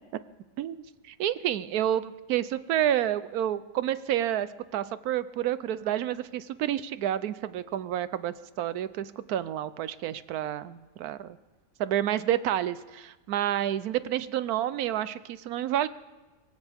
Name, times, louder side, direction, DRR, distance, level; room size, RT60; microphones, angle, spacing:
voice 1, 0.6-11.4 11.8-15.9, right 11 dB, 85° right, 15 dB, 1.2 m, -29 dB
23.5 x 16.5 x 3.5 m, 1.2 s
omnidirectional pair, 1.6 m